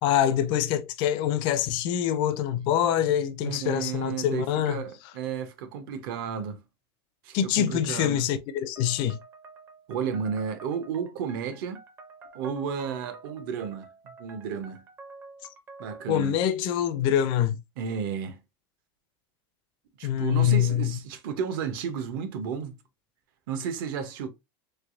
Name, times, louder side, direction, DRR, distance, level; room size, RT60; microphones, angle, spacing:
voice 1, 0.0-4.8 7.3-9.2 16.1-17.6 20.0-21.0, left 10 dB, 40° left, 0.4 m, -25 dB
voice 2, 3.4-6.6 7.2-8.3 9.9-11.8 12.3-14.8 15.8-16.3 17.8-18.4 20.0-22.7 23.5-24.3, right 7 dB, 60° right, 0.6 m, -32 dB
sound 1, 8.8-16.1, right 4 dB, 20° right, 0.4 m, -48 dB
3.3 x 3.0 x 2.4 m
supercardioid pair, 165°, 13 cm